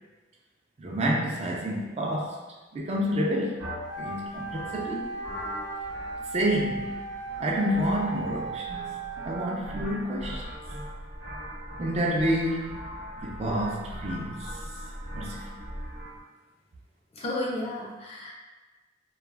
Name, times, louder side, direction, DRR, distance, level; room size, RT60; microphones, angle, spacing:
voice 1, 0.8-2.4 2.7-3.6 4.0-5.1 6.3-6.9 7.4-9.0 9.2-10.5 11.8-12.8 13.2-14.5 15.1-15.5, equal, 35° right, -2 dB, 0.3 m, -28 dB
sound 1, 3.6-16.2, equal, 65° right, 0.8 m, -40 dB
Wind instrument woodwind instrument, 3.8-9.8, right 3 dB, 90° left, 0.8 m, -37 dB
voice 2, 17.1-18.3, left 1 dB, 30° left, -3 dB, 0.5 m, -32 dB
2.3 x 2.0 x 3.1 m, 1.2 s
head